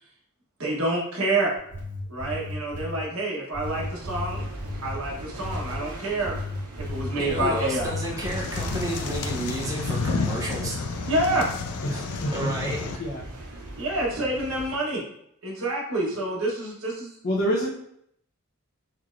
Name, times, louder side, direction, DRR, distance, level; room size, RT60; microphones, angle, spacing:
voice 1, 0.6-1.5 2.1-4.4 4.8-6.3 6.8-7.9 11.1-11.5 13.8-15.0 15.4-17.1, right 1 dB, 70° right, -2 dB, 1.1 m, -27 dB
sound 1, 1.6-3.0 3.5-4.9 5.4-5.8 6.2-8.4 8.7-9.3, left 2 dB, 10° left, 1.3 m, -34 dB
sound 2, 3.6-14.7, right 1 dB, 85° right, 0.8 m, -40 dB
voice 2, 7.2-10.8 11.9-12.1 12.3-13.0, right 1 dB, 15° right, -3 dB, 0.6 m, -32 dB
sound 3, 7.7-13.0, left 4 dB, 85° left, 0.4 m, -31 dB
voice 3, 11.8-13.2 17.2-17.7, equal, 55° left, -8 dB, 0.7 m, -28 dB
4.4 x 3.1 x 2.5 m, 0.72 s
head